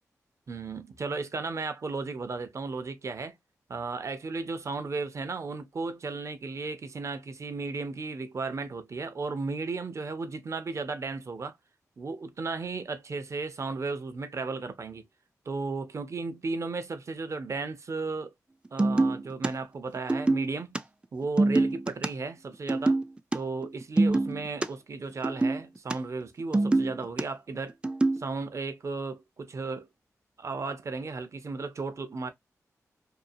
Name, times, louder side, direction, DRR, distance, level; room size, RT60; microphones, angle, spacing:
voice 1, 0.5-3.4 3.7-11.6 12.0-15.1 15.5-18.3 18.7-20.8 21.1-23.0 23.3-27.8 28.2-29.9 30.4-32.3, right 3 dB, 55° right, 0.6 m, -35 dB
sound 1, 18.8-19.5 20.0-20.8 21.2-22.1 22.7-23.0 23.3-23.4 23.6-24.7 25.2-25.9 26.4-27.2 27.8-28.2, right 2 dB, 15° right, 0.3 m, -24 dB
2.6 x 2.5 x 2.6 m
cardioid pair, 65°, 6 cm